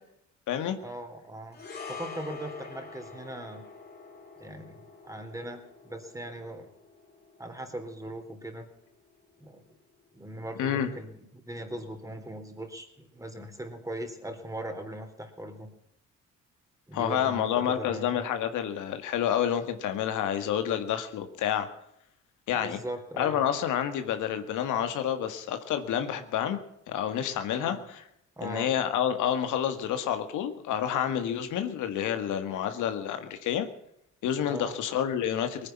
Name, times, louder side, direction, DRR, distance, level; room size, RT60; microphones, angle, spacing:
voice 1, 0.8-1.6 1.9-3.6 4.4-6.7 7.4-8.7 9.4-9.6 10.1-15.7 16.9-18.2 22.5-23.4 27.5-27.8 28.4-28.7 34.5-34.8, right 1 dB, 10° right, 6 dB, 3.5 m, -40 dB
sound 1, 1.5-10.0 10.3-10.5, left 4 dB, 30° left, 3.6 m, -46 dB
voice 2, 16.9-21.7 22.5-22.8 23.2-26.6 26.9-28.0 28.4-33.7 34.2-35.7, left 9 dB, 85° left, 8 dB, 1.9 m, -29 dB
19.5 x 9.9 x 7.3 m, 0.76 s
cardioid pair, 90°, 30 cm